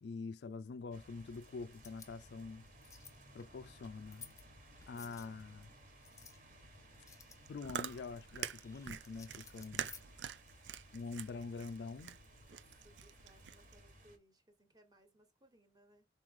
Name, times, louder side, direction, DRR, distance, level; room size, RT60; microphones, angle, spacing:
voice 1, 0.0-2.7 3.3-4.3 4.9-5.7 7.5-9.9 10.9-12.2, left 4 dB, 70° left, 0.4 m, -45 dB
sound 1, 0.9-14.2, right 1 dB, 50° right, 1.5 m, -60 dB
sound 2, 1.7-10.6, left 6 dB, 20° left, 0.7 m, -59 dB
voice 2, 4.8-5.5 12.3-16.1, right 1 dB, 25° right, 1.3 m, -67 dB
Chewing mastication, 7.3-13.8, right 9 dB, 90° right, 0.4 m, -46 dB
4.3 x 3.1 x 3.7 m
head